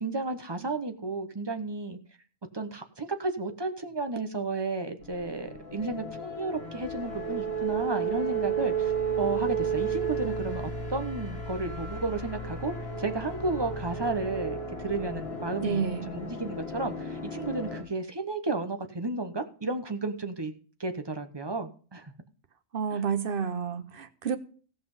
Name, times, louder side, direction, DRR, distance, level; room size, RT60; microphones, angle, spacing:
voice 1, 0.0-2.0 2.5-8.9 9.2-20.5 20.8-22.1 22.9-23.0, right 3 dB, 20° right, 1.0 m, -33 dB
sound 1, 5.0-17.8, right 4 dB, 50° left, 2.4 m, -33 dB
voice 2, 15.6-16.1 22.7-24.4, right 6 dB, 50° right, 1.0 m, -30 dB
17.0 x 5.9 x 5.5 m
omnidirectional pair, 1.3 m